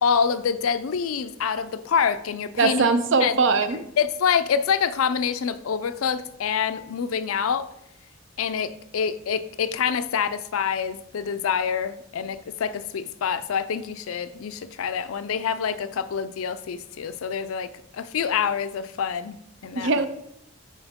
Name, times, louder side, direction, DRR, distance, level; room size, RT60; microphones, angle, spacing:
voice 1, 0.0-2.9 3.2-3.4 4.0-7.7 8.4-19.9, left 7 dB, 80° left, 0.4 m, -26 dB
voice 2, 2.6-3.8 19.8-20.1, right 4 dB, 60° right, 0.5 m, -21 dB
7.0 x 4.5 x 3.6 m
head